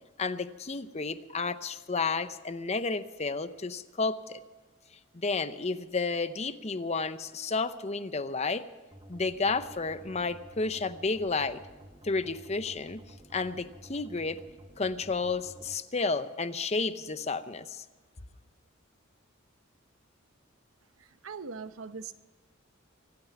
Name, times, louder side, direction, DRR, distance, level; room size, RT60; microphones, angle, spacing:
voice 1, 0.2-4.4 5.1-8.6 9.1-11.6 12.0-13.0 13.3-14.4 14.8-17.8, left 4 dB, 30° left, 12 dB, 0.7 m, -31 dB
sound 1, 8.9-15.7, right 1 dB, 20° right, 1.7 m, -52 dB
voice 2, 21.0-22.1, right 5 dB, 80° right, 12 dB, 0.8 m, -41 dB
25.0 x 9.2 x 6.0 m, 1.3 s
head